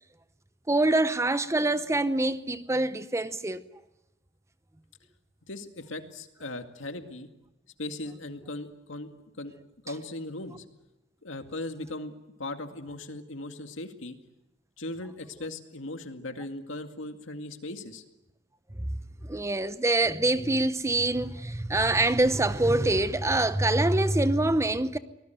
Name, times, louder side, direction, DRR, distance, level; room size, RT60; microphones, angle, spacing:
voice 1, 0.7-3.6 18.8-18.9 19.2-25.0, right 2 dB, 15° right, 0.8 m, -25 dB
voice 2, 5.5-7.3 7.8-9.1 9.4-9.5 9.8-10.6 11.2-12.1 12.4-14.2 14.8-18.0, left 2 dB, 85° left, 2.2 m, -38 dB
24.5 x 19.5 x 9.3 m
head